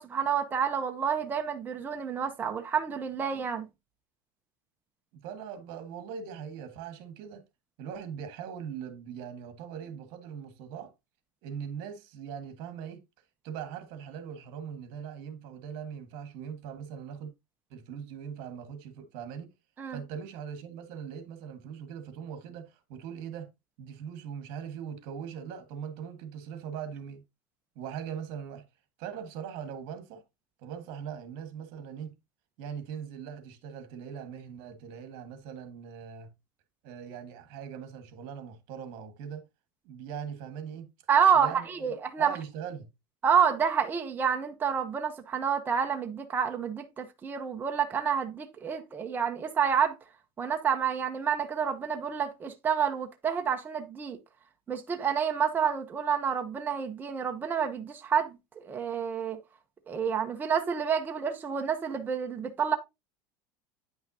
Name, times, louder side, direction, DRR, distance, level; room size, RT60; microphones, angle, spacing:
voice 1, 0.0-3.7 19.8-20.0 41.1-42.4 43.2-49.9 50.4-54.2 54.7-59.4 59.9-62.8, right 7 dB, 20° right, 0.8 m, -28 dB
voice 2, 5.1-7.4 7.8-10.9 11.4-13.0 13.4-17.3 17.7-19.5 19.9-23.5 23.8-27.2 27.7-28.6 29.0-30.2 30.6-32.1 32.6-36.3 36.8-39.5 39.8-40.9 41.3-42.9, right 8 dB, 60° right, 1.6 m, -41 dB
9.3 x 5.7 x 2.8 m
supercardioid pair, 150°, 10 cm